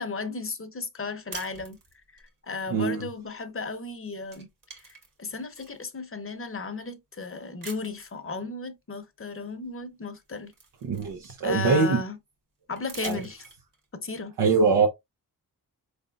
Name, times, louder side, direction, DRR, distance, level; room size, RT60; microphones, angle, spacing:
voice 1, 0.0-1.8 2.1-4.5 4.8-10.5 11.4-12.2 12.7-13.5 13.9-14.4, left 3 dB, 35° left, 0.8 m, -35 dB
sound 1, 1.3-2.3 3.7-3.9 4.2-5.9 6.5-6.6 7.6-8.2 9.7-9.8 10.1-11.7 12.8-13.9, right 4 dB, 55° right, 1.5 m, -45 dB
voice 2, 2.7-3.0 10.8-12.0 13.0-13.2 14.4-14.9, right 4 dB, 90° right, 0.9 m, -23 dB
4.0 x 3.5 x 2.3 m
cardioid pair, 70°, 40 cm